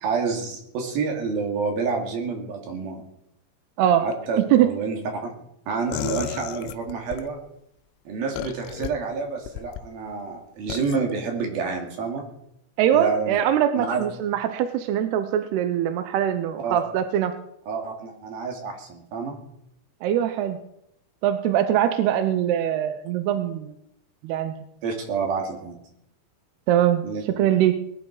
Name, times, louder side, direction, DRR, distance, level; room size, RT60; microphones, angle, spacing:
voice 1, 0.0-3.0 4.0-5.3 5.7-7.4 8.1-12.2 12.9-13.4 13.8-14.0 16.6-16.8 17.7-19.3 24.8-25.8 27.0-27.2, right 5 dB, 55° right, 2 dB, 4.0 m, -28 dB
sound 1, 5.9-7.3 8.4-8.9 9.5-9.8 10.7-11.0, left 12 dB, 85° left, 3.2 m, -32 dB
voice 2, 12.8-17.3 20.0-20.6 21.2-23.8 24.2-24.5 26.7-27.0 27.4-27.8, right 10 dB, 80° right, 9 dB, 2.4 m, -22 dB
21.0 x 11.0 x 4.9 m, 0.78 s
omnidirectional pair, 5.6 m